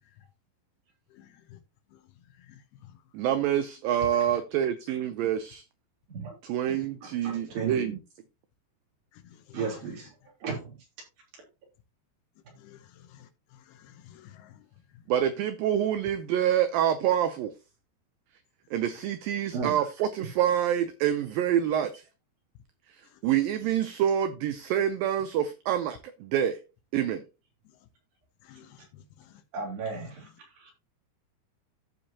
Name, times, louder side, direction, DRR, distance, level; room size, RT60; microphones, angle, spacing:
voice 1, 1.1-1.6 1.9-2.1 2.4-3.0 9.1-9.9 12.6-14.7 23.1-23.2 28.4-29.4, left 10 dB, 80° left, 2.8 m, -53 dB
voice 2, 3.1-5.6 6.4-8.0 15.1-17.6 18.7-22.1 22.9-26.6 26.9-27.2, right 10 dB, 80° right, 2.1 m, -27 dB
voice 3, 7.2-7.9 9.5-10.1 10.4-10.8 19.5-19.8 29.5-30.3 30.6-30.7, right 5 dB, 60° right, 5.1 m, -34 dB
15.0 x 4.9 x 2.8 m
omnidirectional pair, 4.7 m